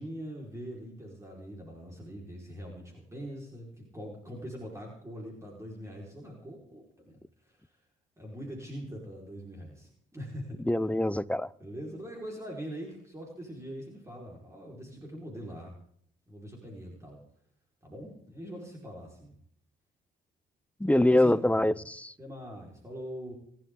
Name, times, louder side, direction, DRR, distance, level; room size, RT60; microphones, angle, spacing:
voice 1, 0.0-7.7 8.2-10.6 11.6-15.8 16.3-17.2 17.8-19.4 20.8-21.8 22.2-23.4, equal, 15° right, 4.8 m, -43 dB
voice 2, 10.6-11.5 20.8-22.1, left 1 dB, 5° left, 0.7 m, -24 dB
27.5 x 12.0 x 3.8 m
cardioid pair, 90°, 20 cm